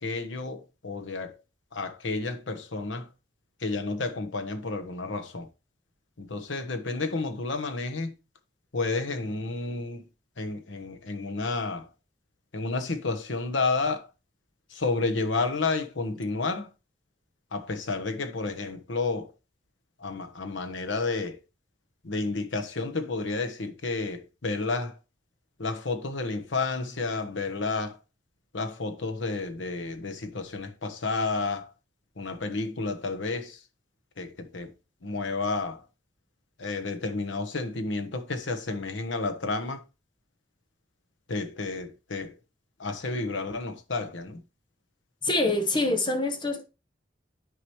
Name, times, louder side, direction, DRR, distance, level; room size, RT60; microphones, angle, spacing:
voice 1, 0.0-1.4 1.7-3.1 3.6-5.5 6.2-8.1 8.7-10.0 10.4-11.9 12.5-14.1 14.7-16.7 17.5-19.3 20.0-21.4 22.0-25.0 25.6-28.0 28.5-31.7 32.2-33.6 34.2-34.7 35.0-35.8 36.6-39.8 41.3-42.3 42.8-44.4, left 3 dB, 80° left, 1.1 m, -31 dB
voice 2, 45.2-46.6, left 2 dB, 25° left, 1.0 m, -25 dB
9.6 x 4.9 x 3.1 m
head